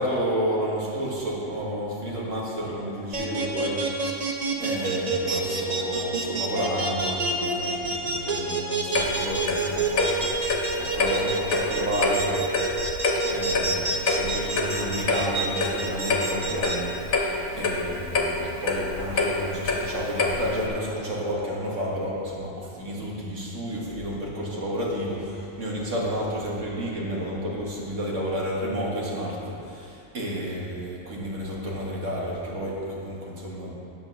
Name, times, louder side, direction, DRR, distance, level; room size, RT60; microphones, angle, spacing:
voice 1, 0.0-12.5 13.2-33.7, equal, 60° right, -4 dB, 2.0 m, -31 dB
sound 1, 3.1-16.7, right 3 dB, 35° right, 0.8 m, -27 dB
Clock, 8.9-20.7, left 3 dB, 85° left, 1.4 m, -27 dB
9.0 x 5.6 x 6.6 m, 2.6 s
omnidirectional pair, 1.4 m